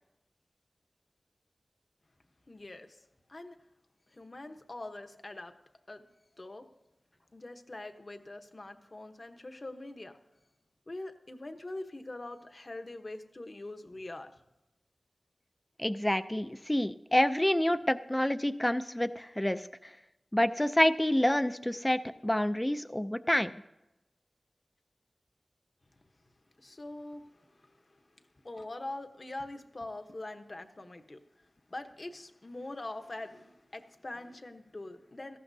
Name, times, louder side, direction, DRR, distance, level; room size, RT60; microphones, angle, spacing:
voice 1, 2.5-3.0 3.3-3.6 4.1-5.5 5.9-6.0 6.4-6.7 7.3-10.2 10.9-14.3 26.6-35.4, left 2 dB, 45° left, 6 dB, 1.0 m, -43 dB
voice 2, 15.8-19.6 20.3-23.5, left 1 dB, 15° left, 12 dB, 0.5 m, -28 dB
17.5 x 14.5 x 2.7 m, 0.94 s
wide cardioid pair, 75°, 0 cm